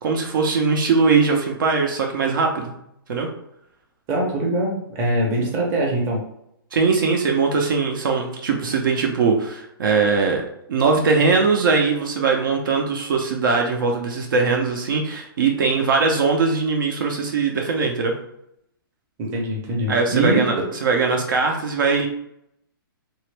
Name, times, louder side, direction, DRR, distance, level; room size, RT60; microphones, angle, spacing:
voice 1, 0.0-2.7 3.1-3.3 6.7-18.1 19.9-20.6 20.8-22.1, right 4 dB, 60° right, 2 dB, 0.8 m, -20 dB
voice 2, 4.1-6.2 19.2-20.6, right 1 dB, 20° right, -2 dB, 0.8 m, -23 dB
3.0 x 2.7 x 3.3 m, 0.78 s
hypercardioid pair, 160°, 12 cm